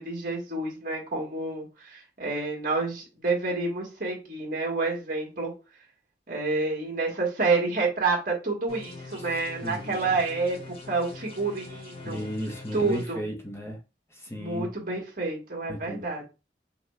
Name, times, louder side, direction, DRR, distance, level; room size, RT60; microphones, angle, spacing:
voice 1, 0.0-5.5 6.3-12.3 12.7-13.2 14.3-16.2, right 3 dB, 50° right, 1.7 m, -29 dB
sound 1, 8.7-13.1, left 3 dB, 35° left, 1.1 m, -44 dB
voice 2, 9.2-10.2 12.0-13.8 14.1-14.7 15.7-16.1, equal, 15° left, 0.8 m, -35 dB
5.6 x 2.3 x 3.1 m
head